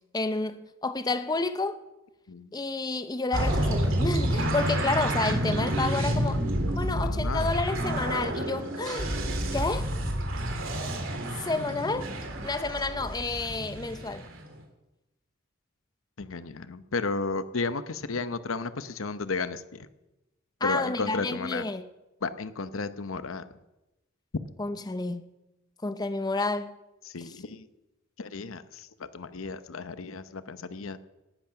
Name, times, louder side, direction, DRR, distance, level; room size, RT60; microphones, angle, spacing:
voice 1, 0.1-1.8 2.5-6.4 6.7-9.1 9.5-9.9 11.4-12.1 12.4-14.2 20.6-21.9 24.6-25.2 25.8-26.7 27.2-27.4, left 3 dB, 20° left, 0.6 m, -30 dB
sound 1, 3.3-14.4, right 1 dB, 70° right, 3.0 m, -29 dB
voice 2, 6.9-7.5 16.2-19.6 20.6-21.7 22.2-23.4 27.0-27.7 28.2-31.0, left 4 dB, 80° left, 0.8 m, -33 dB
18.0 x 12.0 x 5.8 m
head